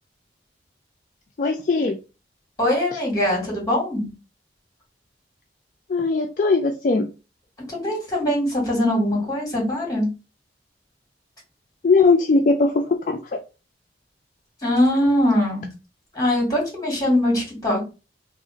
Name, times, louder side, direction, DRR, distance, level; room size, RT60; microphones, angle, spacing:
voice 1, 1.4-2.0 2.9-3.0 5.9-7.0 11.8-13.2, left 3 dB, 45° left, 3 dB, 0.4 m, -19 dB
voice 2, 2.6-4.1 7.7-10.1 14.6-15.7 16.1-17.9, left 1 dB, 20° left, -2 dB, 1.8 m, -22 dB
3.0 x 2.4 x 3.9 m, 0.31 s
head